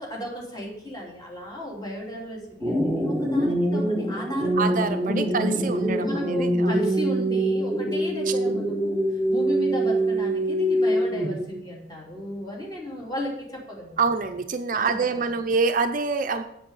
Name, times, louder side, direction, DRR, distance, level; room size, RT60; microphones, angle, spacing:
voice 1, 0.0-5.6 6.0-14.1 14.7-15.3, left 1 dB, 25° left, -3 dB, 2.9 m, -35 dB
sound 1, 2.6-11.6, right 1 dB, ahead, 1.3 m, -24 dB
voice 2, 4.6-6.7 8.3-8.4 14.0-16.4, right 4 dB, 50° right, 8 dB, 0.6 m, -26 dB
7.8 x 7.6 x 5.5 m, 0.77 s
head